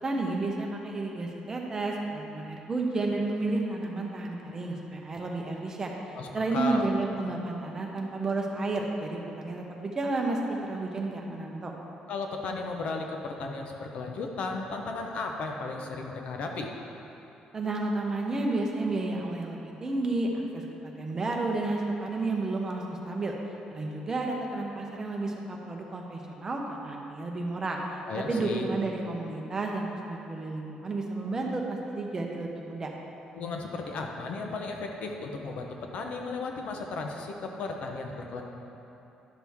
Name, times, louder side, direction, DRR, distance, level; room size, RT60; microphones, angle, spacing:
voice 1, 0.0-5.9 6.3-11.7 17.5-20.6 21.0-23.3 23.7-27.8 28.3-32.9, right 2 dB, 25° right, 0 dB, 0.8 m, -31 dB
voice 2, 6.2-6.9 12.1-16.7 28.1-28.7 33.3-38.4, left 3 dB, 60° left, 2 dB, 0.8 m, -35 dB
11.5 x 6.0 x 3.5 m, 3.0 s
cardioid pair, 155°, 2 cm